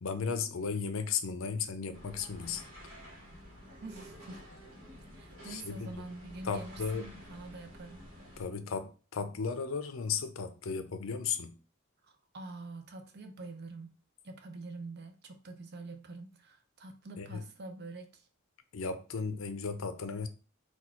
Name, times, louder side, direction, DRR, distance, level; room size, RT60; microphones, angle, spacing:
voice 1, 0.0-2.6 5.4-6.0 6.4-7.1 8.4-11.6 17.2-17.4 18.7-20.3, left 5 dB, 80° left, 0.6 m, -35 dB
beitou street, 1.9-8.4, equal, 70° right, 1.4 m, -51 dB
voice 2, 3.8-4.5 5.1-8.0 12.0-14.0 14.2-18.3, right 2 dB, 55° right, 0.7 m, -46 dB
4.3 x 2.4 x 4.3 m
head